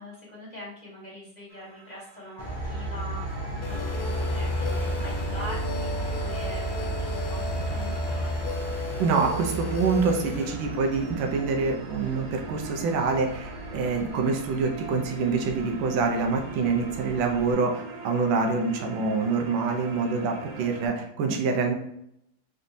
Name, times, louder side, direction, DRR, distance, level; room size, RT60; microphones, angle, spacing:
voice 1, 0.0-5.9 6.1-8.5, equal, 30° left, -6 dB, 1.0 m, -42 dB
sound 1, 1.5-20.9, right 4 dB, 65° right, 1.3 m, -45 dB
Train, 2.4-17.5, equal, 35° right, 0.8 m, -33 dB
sound 2, 3.6-10.5, left 3 dB, 70° left, 0.9 m, -36 dB
voice 2, 9.0-21.7, right 4 dB, 85° right, 2 dB, 1.5 m, -26 dB
4.0 x 3.3 x 2.6 m, 0.76 s
omnidirectional pair, 2.1 m